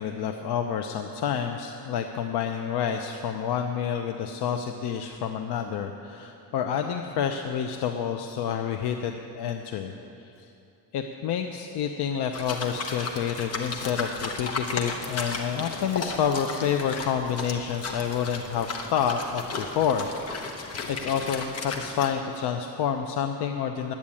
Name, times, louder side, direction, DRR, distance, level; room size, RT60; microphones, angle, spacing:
voice 1, 0.0-10.0 10.4-10.5 10.9-20.6 20.9-23.9, left 8 dB, 80° left, 5 dB, 0.7 m, -29 dB
sound 1, 12.3-22.1, left 4 dB, 40° left, 1.0 m, -34 dB
10.5 x 8.6 x 8.5 m, 2.7 s
cardioid pair, 160°, 39 cm